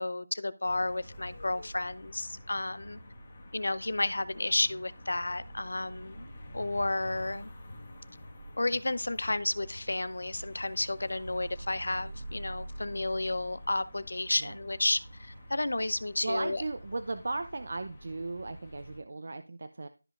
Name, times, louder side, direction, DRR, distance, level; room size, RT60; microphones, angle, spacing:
voice 1, 0.0-3.0 3.5-6.3 6.5-7.5 8.6-16.6, left 2 dB, 70° left, 0.6 m, -32 dB
sound 1, 0.6-19.0, equal, 20° left, 1.4 m, -46 dB
voice 2, 16.2-19.9, right 2 dB, 45° right, 0.4 m, -36 dB
13.0 x 5.0 x 2.4 m
figure-of-eight pair, 175°, 0 cm